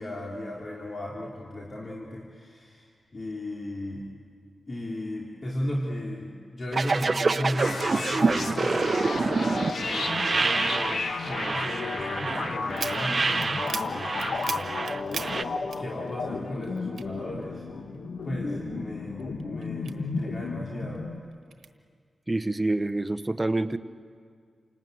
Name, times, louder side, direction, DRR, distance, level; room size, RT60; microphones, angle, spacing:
voice 1, 0.0-2.9 3.1-4.1 4.7-17.7 18.2-21.1, left 1 dB, 50° left, -3 dB, 3.4 m, -36 dB
sound 1, 6.7-15.4, right 4 dB, 50° right, 0.8 m, -27 dB
sound 2, 7.6-21.2, left 4 dB, 80° left, 1.8 m, -33 dB
sound 3, 12.7-16.4 16.6-18.0 18.4-20.5 20.9-21.7, right 6 dB, 90° right, 1.2 m, -38 dB
voice 2, 22.3-23.8, right 2 dB, 20° right, 12 dB, 1.0 m, -27 dB
28.5 x 19.0 x 9.3 m, 2.1 s
cardioid pair, 65°, 0 cm